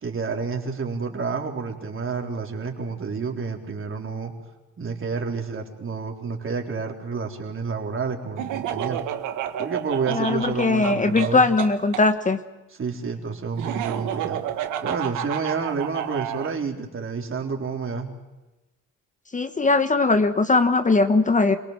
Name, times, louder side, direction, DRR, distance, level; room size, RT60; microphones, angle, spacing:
voice 1, 0.0-4.3 4.8-9.0 9.6-11.5 12.8-14.4 14.8-18.1, right 5 dB, 45° right, 2 dB, 4.0 m, -29 dB
Laughter, 8.4-12.0 13.6-16.5, right 10 dB, 90° right, 1.7 m, -30 dB
voice 2, 10.1-12.4 19.3-21.6, left 3 dB, 25° left, 9 dB, 1.3 m, -20 dB
27.0 x 18.5 x 7.5 m, 1.0 s
cardioid pair, 90°, 30 cm